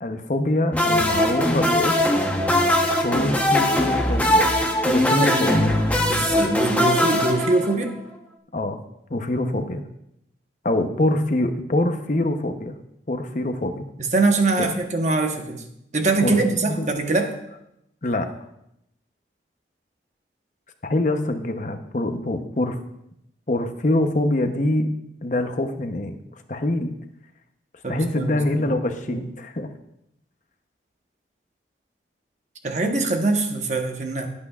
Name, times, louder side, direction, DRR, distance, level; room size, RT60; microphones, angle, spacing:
voice 1, 0.0-2.0 3.0-4.6 4.8-5.7 8.5-8.8 9.1-9.8 10.6-12.8 13.1-13.9 14.6-14.7 16.2-16.4 16.6-16.9 18.0-18.3 20.8-22.8 23.5-24.9 25.2-26.2 26.5-26.9 27.9-29.7, left 1 dB, 45° left, 7 dB, 0.8 m, -24 dB
sound 1, 0.7-8.0, left 1 dB, 10° left, 0.9 m, -21 dB
voice 2, 6.1-7.9 14.1-15.6 15.9-17.3 27.8-28.7 29.1-29.2 32.6-34.3, right 3 dB, 40° right, 4 dB, 1.1 m, -23 dB
16.5 x 8.4 x 2.4 m, 0.80 s
head